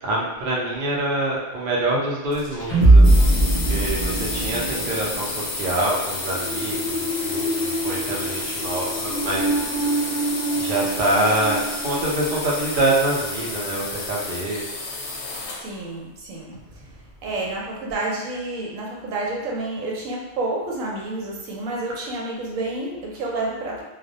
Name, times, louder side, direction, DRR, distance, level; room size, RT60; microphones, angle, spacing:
voice 1, 0.0-3.3 3.7-9.6 10.5-14.6, right 1 dB, 55° right, -4 dB, 0.6 m, -25 dB
sound 1, 2.3-12.8, right 1 dB, 40° left, 0.5 m, -22 dB
sound 2, 3.0-15.7, left 3 dB, 65° left, 0.8 m, -31 dB
voice 2, 15.6-16.8 17.2-23.8, right 2 dB, 85° right, -2 dB, 1.0 m, -29 dB
2.3 x 2.0 x 2.7 m, 1.1 s
omnidirectional pair, 1.4 m